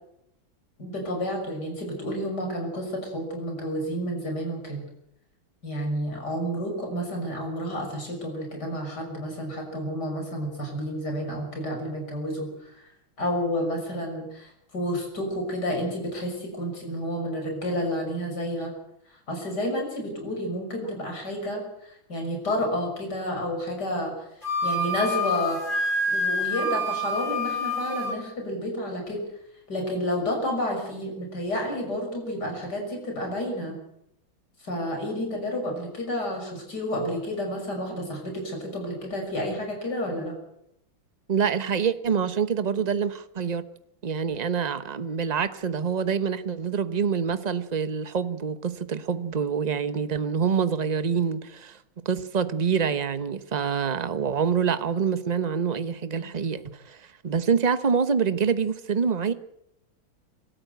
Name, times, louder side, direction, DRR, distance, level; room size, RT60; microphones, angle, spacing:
voice 1, 0.8-4.8 5.6-12.7 13.2-18.7 19.3-24.1 24.6-25.6 26.1-29.2 29.7-33.8 34.6-40.3, equal, 55° left, 7.0 m, -30 dB
Wind instrument woodwind instrument, 24.4-28.2, left 1 dB, 25° left, 4.5 m, -27 dB
voice 2, 41.3-43.6 44.0-51.8 52.0-59.3, right 6 dB, 30° right, 0.8 m, -26 dB
25.5 x 13.5 x 8.0 m
omnidirectional pair, 2.1 m